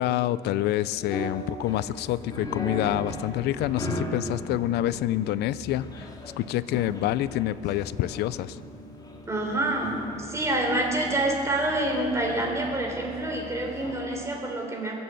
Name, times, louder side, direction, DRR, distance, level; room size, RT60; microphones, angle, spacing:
voice 1, 0.0-6.1 6.4-8.6, left 13 dB, 80° left, 17 dB, 0.5 m, -27 dB
sound 1, 0.9-14.2, left 1 dB, 25° left, 2.3 m, -38 dB
voice 2, 9.3-15.0, right 1 dB, 15° right, 0 dB, 3.9 m, -27 dB
23.0 x 7.8 x 7.8 m, 2.3 s
cardioid pair, 110°, 17 cm